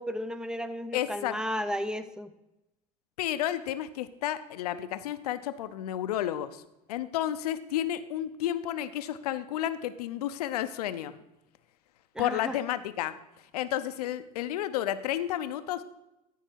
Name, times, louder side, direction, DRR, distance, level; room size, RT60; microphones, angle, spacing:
voice 1, 0.0-2.3 12.1-12.6, equal, 5° right, 12 dB, 0.7 m, -34 dB
voice 2, 0.9-1.4 3.2-6.6 6.9-11.2 12.2-13.1 13.5-15.8, left 12 dB, 85° left, 12 dB, 0.6 m, -31 dB
14.0 x 4.7 x 4.5 m, 0.92 s
hypercardioid pair, 85°, 19 cm